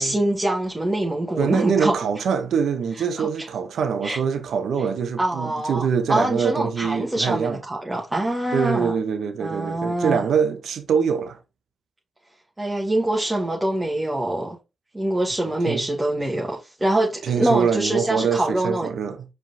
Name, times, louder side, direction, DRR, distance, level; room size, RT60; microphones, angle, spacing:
voice 1, 0.0-1.9 3.2-3.5 4.0-4.2 5.2-8.9 9.4-10.2 12.6-14.6 14.9-18.9, right 1 dB, 20° right, 1.3 m, -24 dB
voice 2, 1.4-7.6 8.5-11.4 15.7-15.8 17.2-19.2, right 6 dB, 75° right, 0.8 m, -24 dB
4.9 x 3.5 x 2.7 m
supercardioid pair, 45°, 0 cm